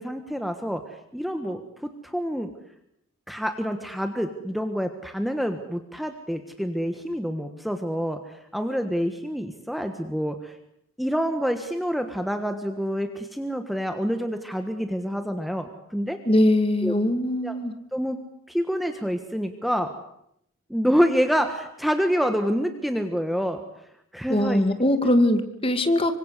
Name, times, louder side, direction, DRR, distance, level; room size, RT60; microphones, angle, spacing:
voice 1, 0.0-2.5 3.3-10.6 11.0-16.2 16.8-17.0 17.4-17.6 17.9-18.2 18.5-19.9 20.7-23.6 24.1-24.9, equal, ahead, 7 dB, 1.4 m, -27 dB
voice 2, 16.3-17.7 24.3-26.1, left 1 dB, 25° left, 9 dB, 2.2 m, -21 dB
25.5 x 24.5 x 8.2 m, 0.75 s
head